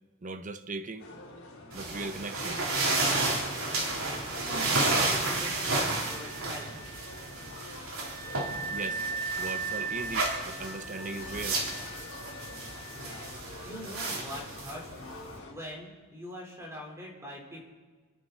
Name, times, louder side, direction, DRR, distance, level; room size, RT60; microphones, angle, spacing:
voice 1, 0.2-1.0 1.7-2.6 8.7-9.0 9.4-11.6, right 3 dB, 35° right, 0.8 m, -38 dB
sound 1, 1.0-15.5, left 2 dB, 80° left, 3.6 m, -47 dB
sound 2, 1.7-15.4, right 2 dB, 70° right, 3.9 m, -32 dB
voice 2, 4.1-7.0 12.9-13.3 13.6-15.0 15.5-17.7, equal, 15° right, 4.3 m, -43 dB
Wind instrument woodwind instrument, 5.9-13.3, right 4 dB, 15° left, 2.0 m, -39 dB
28.0 x 11.0 x 4.2 m
head